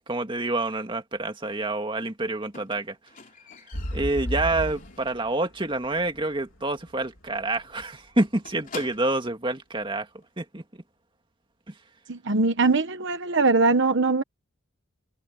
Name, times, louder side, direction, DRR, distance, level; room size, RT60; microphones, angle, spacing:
voice 1, 0.1-3.0 3.9-10.1 10.4-10.6 11.7-11.8, right 2 dB, 25° right, 2.1 m, -27 dB
Squeak, 2.5-5.3 5.6-6.0 6.3-6.4 6.8-6.9 7.1-7.3 7.5-9.4 10.2-10.3, left 5 dB, 40° left, 3.1 m, -46 dB
sound 1, 3.7-7.6 8.2-8.3, equal, 60° left, 3.4 m, -34 dB
voice 2, 12.1-14.2, right 3 dB, 55° right, 1.1 m, -21 dB
head